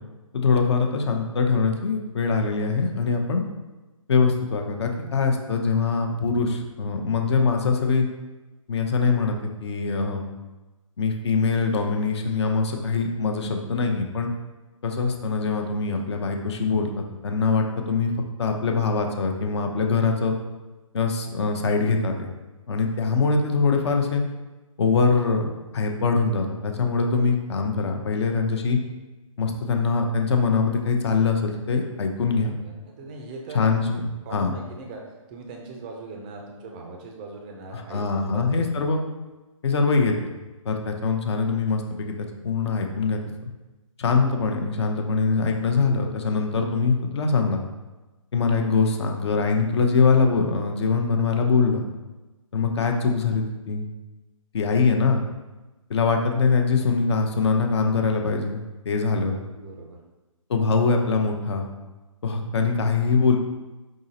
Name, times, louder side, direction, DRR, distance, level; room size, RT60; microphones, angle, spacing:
voice 1, 0.3-3.4 4.1-8.1 8.7-10.3 11.0-14.3 14.8-16.9 17.2-18.1 18.4-20.3 20.9-22.3 22.7-24.2 24.8-25.5 25.7-28.8 29.4-32.6 33.5-34.5 37.7-39.0 39.6-40.1 40.6-42.1 42.4-43.2 44.0-47.6 48.3-51.8 52.5-53.9 54.5-55.3 55.9-59.4 60.5-61.7 62.2-63.4, left 4 dB, 50° left, 3 dB, 0.7 m, -23 dB
voice 2, 32.3-33.9 34.2-35.0 35.3-38.9 59.3-60.0, right 3 dB, 15° right, 1 dB, 0.4 m, -40 dB
5.0 x 3.7 x 2.7 m, 1.1 s
hypercardioid pair, 150°, 18 cm